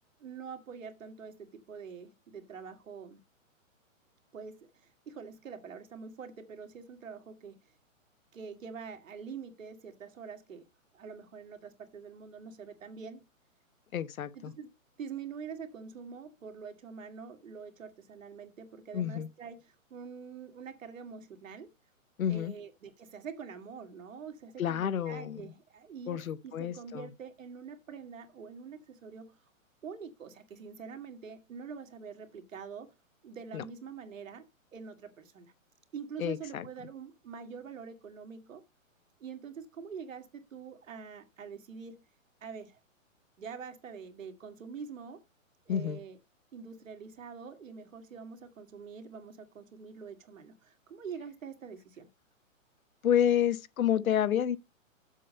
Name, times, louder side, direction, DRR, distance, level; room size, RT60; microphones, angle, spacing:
voice 1, 0.2-3.2 4.3-7.6 8.3-10.7 10.9-13.2 14.3-14.7 15.0-19.6 19.9-21.7 22.3-29.4 29.8-32.9 33.2-34.4 34.7-35.5 35.9-38.6 39.2-42.0 42.4-42.8 43.4-45.2 45.7-46.2 46.5-52.1, right 6 dB, 70° right, 2.1 m, -45 dB
voice 2, 13.9-14.5 18.9-19.3 22.2-22.5 24.6-25.4 26.1-27.1 33.5-33.6 36.2-36.7 45.7-46.0 53.0-54.6, left 10 dB, 90° left, 0.9 m, -29 dB
7.6 x 5.4 x 6.5 m
hypercardioid pair, 170°, 41 cm